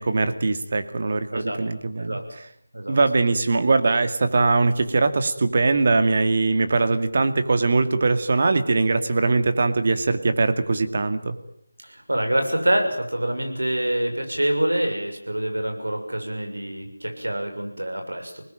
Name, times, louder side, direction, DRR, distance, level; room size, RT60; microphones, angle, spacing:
voice 1, 0.0-2.2 2.9-11.4, right 3 dB, 45° right, 9 dB, 2.3 m, -21 dB
voice 2, 11.8-18.4, right 1 dB, 85° right, 4 dB, 6.9 m, -26 dB
26.5 x 20.0 x 9.2 m, 0.70 s
figure-of-eight pair, 165°, 0 cm